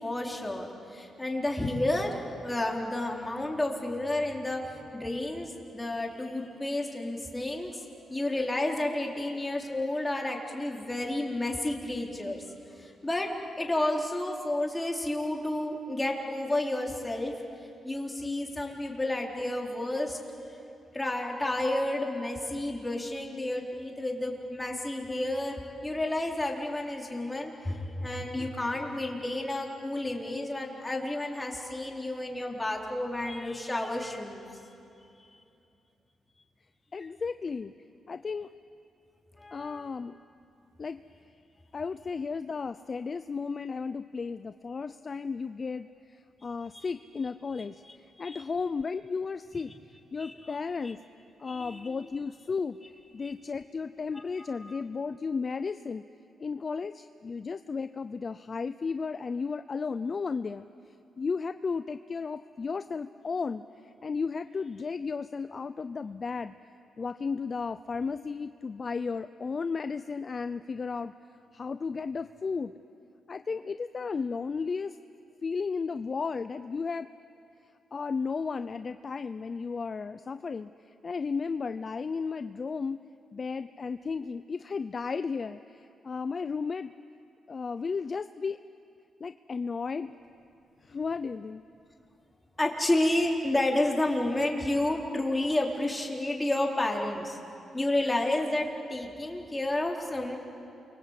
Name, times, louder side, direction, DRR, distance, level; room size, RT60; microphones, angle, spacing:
voice 1, 0.0-7.8 8.1-17.3 17.8-20.2 20.5-20.6 20.9-34.5 39.4-39.8 46.7-46.9 48.2-48.4 50.2-50.5 51.4-51.9 53.2-53.3 54.1-54.2 54.5-54.8 92.6-97.4 97.7-100.4, left 1 dB, 15° left, 0 dB, 4.3 m, -31 dB
voice 2, 36.9-37.7 38.1-38.5 39.5-40.2 40.8-41.0 41.7-49.7 50.1-51.0 51.4-52.8 53.1-56.0 56.4-60.7 61.2-66.5 67.0-71.1 71.5-72.7 73.3-75.0 75.4-77.1 77.9-83.0 83.3-86.9 87.5-88.6 89.2-90.1 90.8-91.6, left 5 dB, 40° left, 11 dB, 0.6 m, -34 dB
28.5 x 24.5 x 8.4 m, 2.7 s
cardioid pair, 80°, 0 cm